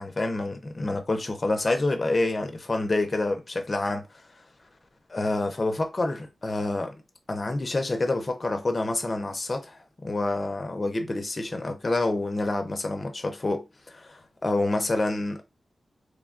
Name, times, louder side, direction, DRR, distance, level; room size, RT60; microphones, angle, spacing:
voice 1, 0.0-4.0 5.1-7.0 7.3-15.4, left 2 dB, 35° left, 0.5 m, -28 dB
3.1 x 2.2 x 2.4 m
wide cardioid pair, 110°, 0 cm